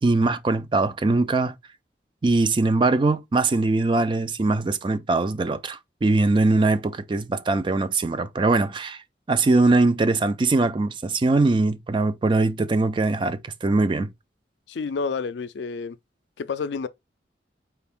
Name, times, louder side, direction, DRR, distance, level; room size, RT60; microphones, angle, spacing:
voice 1, 0.0-1.5 2.2-9.0 9.3-14.1, right 3 dB, 30° right, 0.3 m, -21 dB
voice 2, 14.7-16.0 16.4-16.9, left 5 dB, 80° left, 0.4 m, -29 dB
4.5 x 2.5 x 3.4 m
head